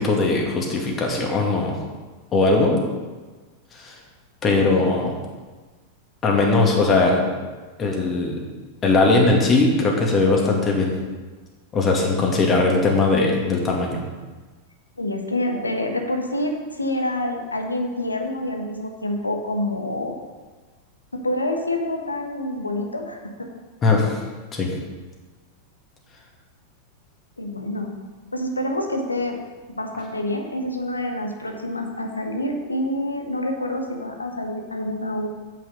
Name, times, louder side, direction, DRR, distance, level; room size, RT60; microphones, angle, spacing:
voice 1, 0.0-1.7 2.3-2.8 3.7-4.0 4.4-5.2 6.2-7.2 7.8-8.4 8.8-10.9 11.7-14.0 23.8-24.2 24.5-24.7, left 3 dB, 25° left, 0 dB, 2.2 m, -19 dB
voice 2, 15.0-20.1 21.1-23.5 27.4-27.9 28.3-29.4 29.8-35.3, left 1 dB, 80° left, 3 dB, 1.3 m, -27 dB
8.5 x 7.6 x 5.3 m, 1.3 s
figure-of-eight pair, 90°, 0 cm